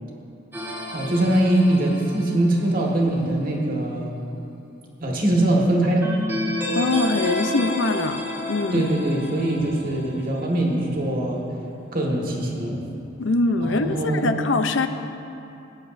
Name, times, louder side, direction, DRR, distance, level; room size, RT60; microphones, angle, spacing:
sound 1, 0.5-2.9 6.0-10.5, left 1 dB, 10° right, 1.5 m, -31 dB
voice 1, 0.9-4.2 5.0-6.1 8.7-11.4 11.9-12.8 13.6-14.3, right 1 dB, 45° right, -2 dB, 1.6 m, -22 dB
voice 2, 6.7-8.2 8.5-8.9 13.2-14.9, left 3 dB, 70° left, 9 dB, 0.5 m, -23 dB
18.5 x 10.0 x 2.6 m, 2.8 s
head